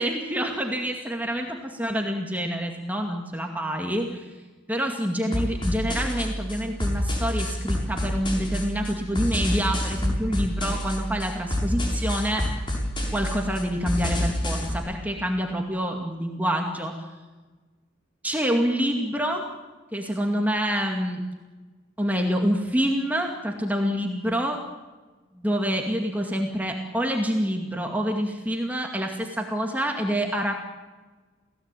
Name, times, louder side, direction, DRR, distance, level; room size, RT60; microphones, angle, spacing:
voice 1, 0.0-4.3 4.7-12.5 13.1-16.9 18.2-19.5 19.9-21.2 22.0-24.6 25.4-30.5, equal, 10° right, 2 dB, 2.2 m, -27 dB
sound 1, 5.3-14.7, left 1 dB, 25° left, 6.9 m, -28 dB
29.5 x 17.5 x 9.2 m, 1.3 s
head